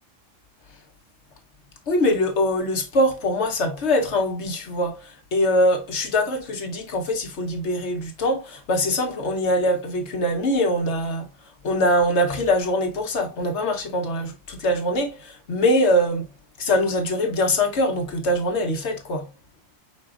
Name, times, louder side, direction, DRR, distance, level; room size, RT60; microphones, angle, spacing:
voice 1, 1.9-11.3 11.6-16.3 16.6-19.3, left 1 dB, 60° left, 1.2 m, -23 dB
4.9 x 4.3 x 2.5 m
omnidirectional pair, 1.3 m